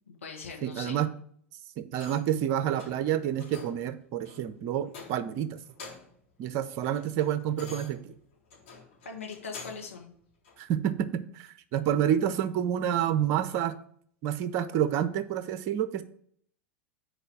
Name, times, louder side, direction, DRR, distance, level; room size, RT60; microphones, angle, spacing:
voice 1, 0.1-1.1 9.1-10.1, left 5 dB, 80° left, 0 dB, 1.7 m, -41 dB
voice 2, 0.6-1.1 1.8-5.6 6.4-8.2 10.6-13.8 14.2-16.0, right 10 dB, 50° right, 13 dB, 0.7 m, -29 dB
sound 1, 1.9-2.4 2.8-3.0 3.4-3.8 4.2-4.4 4.9-5.4 5.7-6.2 6.6-9.9 10.4-10.6, left 4 dB, 65° left, 3.6 m, -47 dB
6.4 x 4.8 x 6.4 m, 0.64 s
figure-of-eight pair, 80°, 7 cm